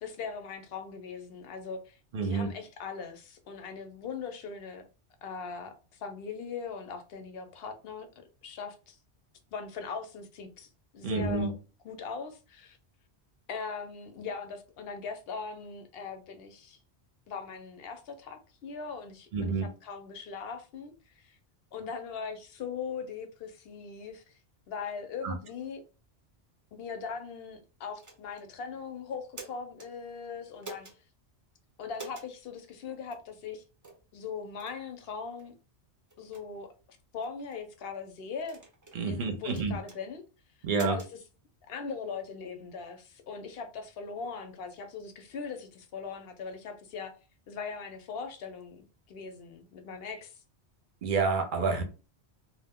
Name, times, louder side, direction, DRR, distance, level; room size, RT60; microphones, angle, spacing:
voice 1, 0.0-4.8 5.2-8.1 8.4-9.0 9.5-10.7 10.9-11.5 11.8-12.8 13.5-16.8 17.3-21.4 21.7-24.3 24.7-25.8 26.7-30.9 31.8-33.6 34.1-35.6 36.2-36.7 37.1-38.6 39.0-40.2 40.8-41.2 41.6-47.1 47.5-48.8 49.1-50.3, left 5 dB, 65° left, 0.8 m, -40 dB
voice 2, 2.1-2.5 11.0-11.5 19.3-19.7 25.2-25.3 38.9-39.8 40.6-41.0 51.0-51.8, right 4 dB, 55° right, 0.7 m, -28 dB
sound 1, 28.0-28.5 29.1-29.9 30.6-31.0 31.9-32.3 33.1-33.2 33.8-34.0 34.6-34.8 35.4-35.5 36.1-36.4 37.2-37.6 38.4-39.0 39.5-40.0 40.7-41.1, right 2 dB, 25° right, 0.5 m, -47 dB
2.4 x 2.1 x 3.5 m
omnidirectional pair, 1.1 m